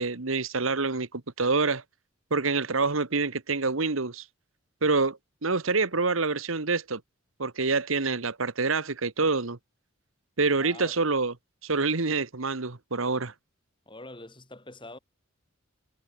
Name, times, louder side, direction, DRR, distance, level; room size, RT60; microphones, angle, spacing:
voice 1, 0.0-1.8 2.3-4.2 4.8-7.0 7.4-9.6 10.4-11.3 11.6-13.3, right 4 dB, 75° right, 1.5 m, -26 dB
voice 2, 10.6-11.0 12.1-12.2 13.9-15.0, left 2 dB, 25° left, 6.5 m, -45 dB
head